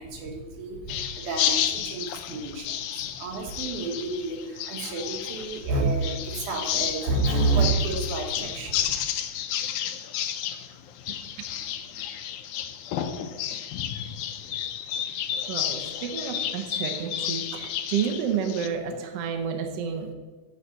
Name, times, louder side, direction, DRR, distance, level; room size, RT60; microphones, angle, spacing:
voice 1, 0.0-8.9, right 3 dB, 85° right, 1 dB, 3.0 m, -29 dB
sound 1, 0.9-18.7, left 10 dB, 85° left, 2.1 m, -31 dB
voice 2, 15.5-20.1, right 7 dB, 65° right, 4 dB, 1.8 m, -30 dB
9.8 x 4.1 x 7.3 m, 1.3 s
omnidirectional pair, 3.4 m